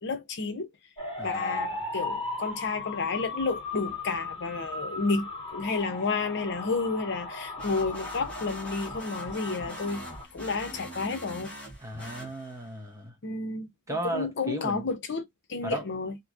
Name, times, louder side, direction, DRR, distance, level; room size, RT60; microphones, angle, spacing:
voice 1, 0.0-0.7 1.2-10.1 10.3-11.5 13.2-16.2, left 4 dB, 55° left, 0.7 m, -31 dB
sound 1, 1.0-10.2, left 3 dB, 20° left, 1.6 m, -37 dB
voice 2, 1.2-1.7 11.8-13.1 13.9-14.8 15.6-15.8, right 2 dB, 15° right, 0.9 m, -35 dB
sound 2, 7.6-12.8, equal, 5° left, 1.5 m, -43 dB
3.0 x 2.6 x 2.5 m
head